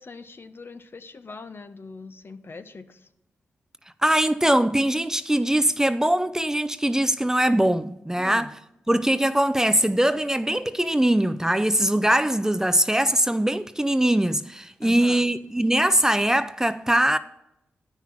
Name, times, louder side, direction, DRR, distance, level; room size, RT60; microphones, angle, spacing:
voice 1, 0.0-3.1 8.2-8.5 14.8-15.3, left 4 dB, 50° left, 0.8 m, -42 dB
voice 2, 4.0-8.5 8.9-17.2, right 1 dB, 10° right, 0.5 m, -22 dB
10.0 x 5.8 x 5.9 m
supercardioid pair, 40°, 5 cm